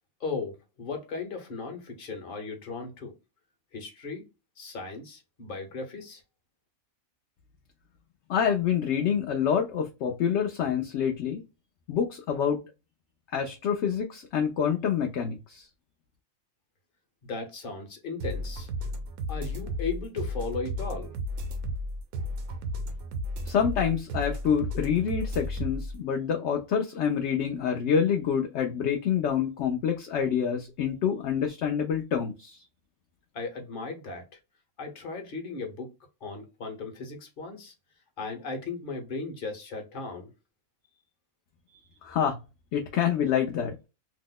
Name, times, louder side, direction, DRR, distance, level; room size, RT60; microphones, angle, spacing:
voice 1, 0.2-3.1 3.7-4.2 4.6-6.2 17.2-18.7 19.3-21.1 33.3-34.3 34.8-35.9 36.2-37.7 38.2-40.3, left 4 dB, 45° left, 1.0 m, -36 dB
voice 2, 8.3-11.4 11.9-12.6 13.3-15.7 23.5-32.6 42.0-42.4 42.7-43.7, left 7 dB, 65° left, 0.7 m, -27 dB
sound 1, 18.2-25.9, equal, 85° right, 1.1 m, -33 dB
2.8 x 2.0 x 3.7 m
omnidirectional pair, 1.5 m